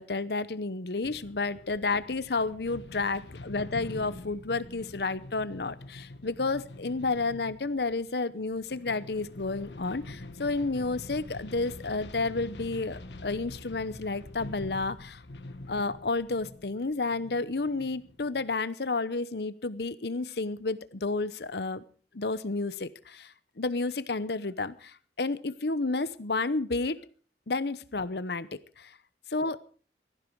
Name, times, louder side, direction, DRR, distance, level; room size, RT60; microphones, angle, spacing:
voice 1, 0.0-15.2 15.7-21.8 22.1-27.0 27.5-29.0 29.3-29.6, left 3 dB, 70° left, 16 dB, 0.9 m, -31 dB
sound 1, 1.0-18.5, left 2 dB, 85° left, 1.4 m, -45 dB
17.5 x 14.5 x 4.6 m, 0.41 s
head